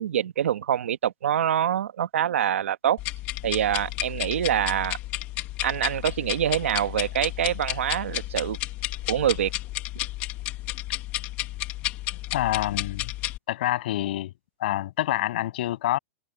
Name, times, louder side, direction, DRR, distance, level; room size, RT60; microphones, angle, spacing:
voice 1, 0.0-3.0 3.4-5.0 5.6-8.6 9.1-9.5, right 10 dB, 90° right, 1.4 m, -25 dB
sound 1, 3.0-13.4, left 16 dB, 25° left, 1.5 m, -32 dB
voice 2, 12.3-13.0 13.5-14.3 14.6-16.0, left 14 dB, 50° left, 7.4 m, -26 dB
supercardioid pair, 175°, 7 cm